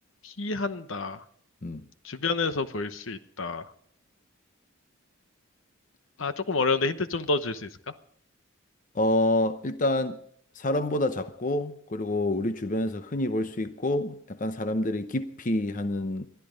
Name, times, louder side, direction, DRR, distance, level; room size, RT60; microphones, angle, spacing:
voice 1, 0.2-1.2 2.0-3.7 6.2-7.7, left 3 dB, 65° left, 0.9 m, -29 dB
voice 2, 8.9-10.2 10.6-16.3, left 1 dB, 40° left, 0.8 m, -27 dB
21.5 x 13.0 x 5.1 m
head